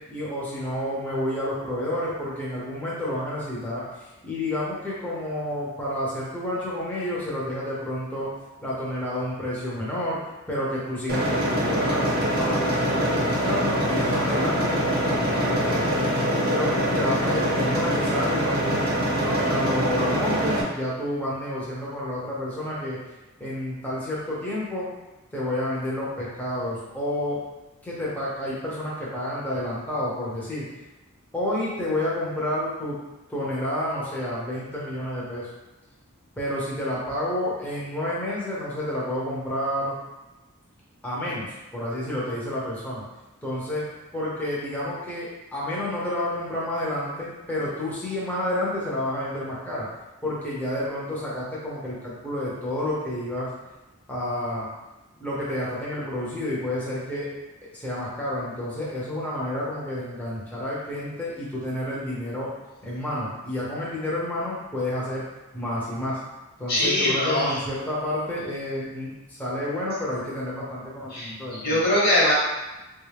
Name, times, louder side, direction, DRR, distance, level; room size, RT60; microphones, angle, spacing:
voice 1, 0.1-8.3 8.6-10.2 10.5-16.0 16.3-18.8 19.2-23.0 23.4-24.9 25.3-27.4 27.8-30.7 31.3-33.0 33.3-35.5 36.4-40.0 41.0-43.0 43.4-43.8 44.1-49.9 50.2-53.5 54.1-54.7 55.2-57.3 57.7-62.5 62.8-65.2 65.5-66.2 66.6-71.8, left 1 dB, 5° left, -7 dB, 0.7 m, -30 dB
sound 1, 11.1-20.6, right 1 dB, 45° right, 0.8 m, -24 dB
voice 2, 66.7-67.6 71.1-72.3, left 1 dB, 45° left, -6 dB, 1.1 m, -22 dB
3.5 x 2.4 x 3.3 m, 1.1 s
head